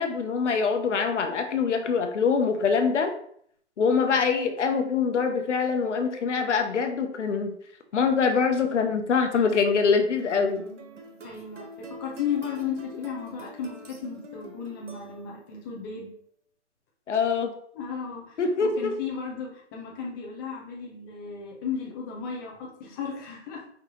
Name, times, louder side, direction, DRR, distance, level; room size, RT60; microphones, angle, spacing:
voice 1, 0.0-3.1 3.8-7.5 7.9-10.6 17.1-17.5 18.4-18.9, left 5 dB, 85° left, 5 dB, 0.9 m, -24 dB
sound 1, 10.2-15.6, right 2 dB, 90° right, 1.2 m, -45 dB
voice 2, 11.2-16.1 17.7-23.7, left 7 dB, 20° left, -2 dB, 0.7 m, -34 dB
4.9 x 2.8 x 3.7 m, 0.63 s
hypercardioid pair, 155°, 35 cm